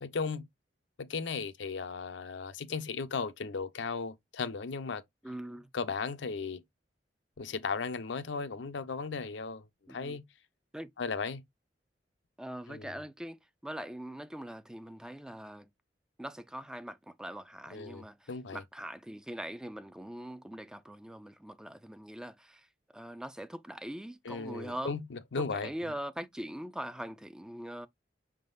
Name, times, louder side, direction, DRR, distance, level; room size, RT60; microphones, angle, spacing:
voice 1, 0.0-0.5 1.0-5.0 5.7-6.6 7.4-10.2 11.0-11.4 12.7-12.9 17.7-18.6 24.2-25.7, left 4 dB, 90° left, 0.6 m, -36 dB
voice 2, 5.2-5.7 9.9-10.2 10.7-10.9 12.4-15.7 16.2-22.7 22.9-25.0 25.4-27.9, right 1 dB, 5° right, 0.3 m, -42 dB
5.7 x 3.7 x 2.5 m
head